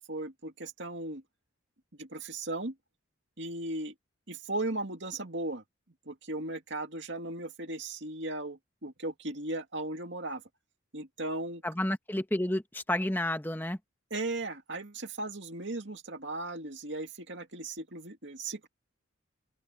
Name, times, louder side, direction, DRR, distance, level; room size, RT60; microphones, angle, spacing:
voice 1, 0.1-1.2 2.0-2.7 3.4-3.9 4.3-5.6 6.1-10.4 10.9-11.6 14.1-18.7, right 2 dB, 60° right, 2.5 m, -37 dB
voice 2, 11.6-13.8, left 1 dB, 10° left, 1.4 m, -30 dB
open air
head